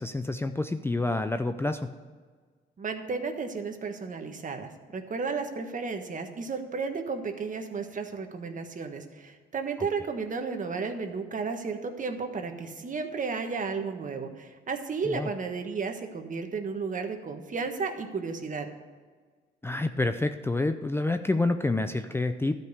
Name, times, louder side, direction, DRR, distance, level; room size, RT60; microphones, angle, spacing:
voice 1, 0.0-1.9 9.8-9.9 15.0-15.3 19.6-22.5, left 2 dB, 10° left, 8 dB, 0.5 m, -28 dB
voice 2, 2.8-18.7, right 4 dB, 40° right, 5 dB, 1.4 m, -33 dB
12.0 x 5.3 x 8.1 m, 1.5 s
cardioid pair, 90°, 20 cm